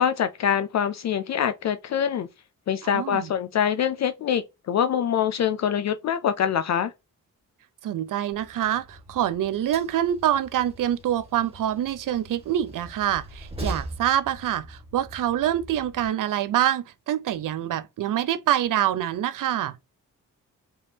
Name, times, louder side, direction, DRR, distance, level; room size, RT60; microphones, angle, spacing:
voice 1, 0.0-2.3 2.7-6.9, left 8 dB, 55° left, 0.4 m, -24 dB
voice 2, 2.8-3.3 7.8-19.8, right 11 dB, 75° right, 0.6 m, -26 dB
Train, 8.3-16.1, right 1 dB, 20° right, 1.8 m, -41 dB
5.2 x 3.5 x 2.8 m
wide cardioid pair, 155°, 32 cm